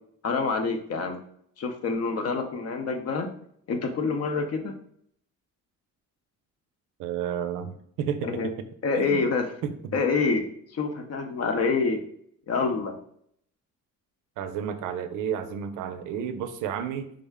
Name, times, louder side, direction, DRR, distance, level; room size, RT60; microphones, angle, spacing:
voice 1, 0.2-1.2 1.6-3.3 3.7-4.7 8.2-8.5 8.8-9.5 9.9-10.5 10.7-12.0 12.5-13.0, left 4 dB, 55° left, 6 dB, 0.7 m, -26 dB
voice 2, 7.0-8.5 9.0-9.2 9.6-9.8 14.4-17.1, right 8 dB, 90° right, 9 dB, 0.5 m, -31 dB
3.5 x 2.1 x 3.5 m, 0.67 s
cardioid pair, 90°, 30 cm